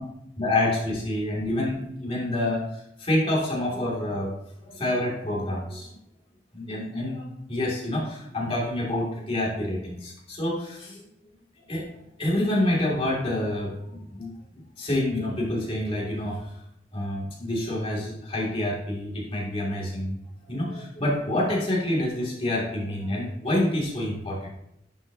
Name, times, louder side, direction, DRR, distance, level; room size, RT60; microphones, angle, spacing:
voice 1, 0.4-4.3 4.6-5.9 6.5-11.0 11.7-14.3 14.8-16.4 16.9-20.2 20.4-24.5, left 1 dB, 30° left, -4 dB, 2.3 m, -27 dB
10.5 x 5.5 x 2.7 m, 0.77 s
head